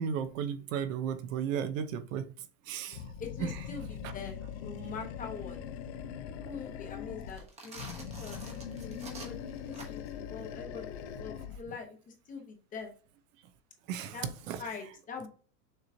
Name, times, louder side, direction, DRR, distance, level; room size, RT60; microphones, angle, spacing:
voice 1, 0.0-3.0 3.4-3.8 4.0-4.1 11.7-11.8 13.9-15.0, right 7 dB, 60° right, 0.7 m, -35 dB
Animal, 2.9-7.4 7.7-11.7, left 8 dB, 45° left, 0.6 m, -41 dB
voice 2, 3.2-5.6 6.3-12.9 14.1-14.3 14.6-15.3, left 5 dB, 20° left, 0.9 m, -44 dB
sound 1, 7.3-10.2, right 3 dB, 15° right, 1.0 m, -48 dB
6.7 x 2.9 x 2.6 m
supercardioid pair, 155°, 46 cm